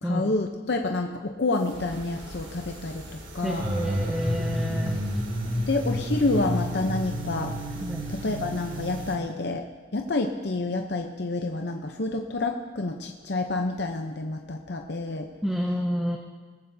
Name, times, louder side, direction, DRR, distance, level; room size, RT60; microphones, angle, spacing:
voice 1, 0.0-3.0 3.3-3.6 4.7-4.8 5.7-7.5 8.1-9.7 9.9-15.3, left 2 dB, 60° left, 4 dB, 0.7 m, -28 dB
sound 1, 1.7-9.2, equal, 80° right, 2.6 m, -31 dB
voice 2, 3.4-5.0 7.8-8.0 15.4-16.2, equal, ahead, 0 dB, 0.8 m, -29 dB
20.0 x 14.5 x 2.7 m, 1.4 s
head